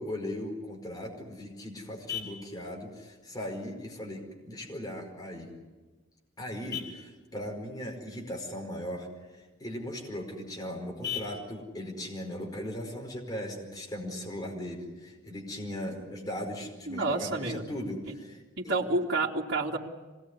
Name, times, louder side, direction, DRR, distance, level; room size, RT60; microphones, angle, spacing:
voice 1, 0.0-5.5 6.4-9.1 9.3-18.7, left 1 dB, 20° left, 0 dB, 5.0 m, -38 dB
Vehicle horn car horn honking, 0.8-13.8, left 9 dB, 60° left, 5.3 m, -46 dB
voice 2, 16.9-17.6 18.6-19.8, right 2 dB, 60° right, -4 dB, 2.8 m, -29 dB
26.0 x 20.0 x 9.7 m, 1.3 s
head